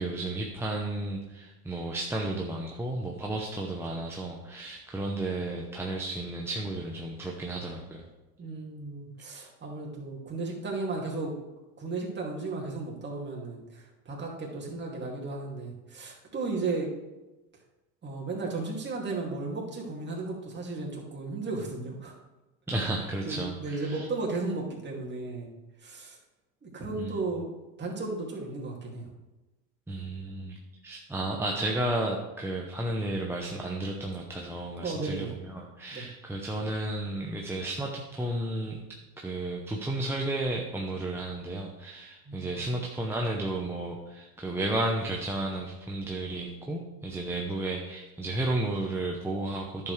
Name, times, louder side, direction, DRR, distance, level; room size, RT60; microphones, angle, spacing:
voice 1, 0.0-8.1 22.7-24.1 27.0-27.2 29.9-30.6 30.8-38.8 39.2-49.9, right 2 dB, 5° right, -2 dB, 0.8 m, -33 dB
voice 2, 8.4-11.3 11.8-16.9 18.0-22.1 23.2-25.5 25.8-26.2 26.6-27.5 27.8-29.1 34.8-35.3 35.9-36.1 42.3-42.6, right 3 dB, 20° right, -2 dB, 2.5 m, -34 dB
10.5 x 7.1 x 3.3 m, 1.1 s
supercardioid pair, 110°, 49 cm